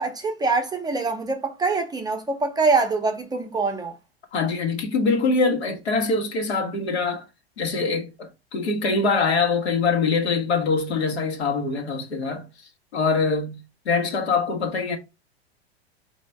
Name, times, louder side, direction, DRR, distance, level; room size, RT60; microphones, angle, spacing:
voice 1, 0.0-3.9, right 4 dB, 10° right, 0.7 m, -24 dB
voice 2, 4.3-7.2 7.6-12.4 12.9-13.6 13.8-15.0, left 4 dB, 80° left, 1.4 m, -23 dB
4.2 x 2.8 x 3.4 m
hypercardioid pair, 95°, 32 cm